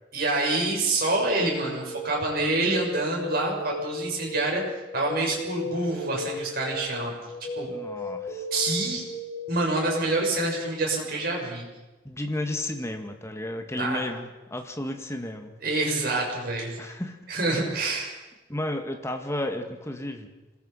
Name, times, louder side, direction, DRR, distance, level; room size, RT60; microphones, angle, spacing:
voice 1, 0.1-7.1 7.6-7.7 8.5-9.0 9.5-11.6 13.7-14.0 15.6-16.8 17.3-18.1, right 2 dB, 55° right, -1 dB, 6.9 m, -27 dB
sound 1, 1.1-10.7, left 2 dB, 50° left, 8.0 m, -35 dB
voice 2, 7.7-8.4 12.0-15.5 16.8-17.2 18.5-20.3, left 1 dB, 15° left, 5 dB, 2.1 m, -32 dB
27.0 x 20.0 x 5.9 m, 1.1 s
head